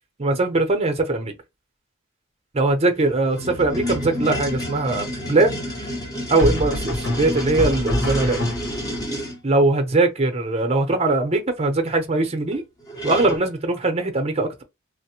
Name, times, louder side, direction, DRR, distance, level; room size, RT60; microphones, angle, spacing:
voice 1, 0.2-1.3 2.5-5.6 6.3-8.4 9.4-12.6 13.0-14.6, right 2 dB, 30° right, 0.7 m, -21 dB
sound 1, 2.9-9.4 12.5-12.6 12.9-13.5, equal, 20° left, 0.7 m, -30 dB
sound 2, 3.7-4.3 6.4-9.0, left 1 dB, 85° left, 1.5 m, -27 dB
3.2 x 2.1 x 2.8 m
head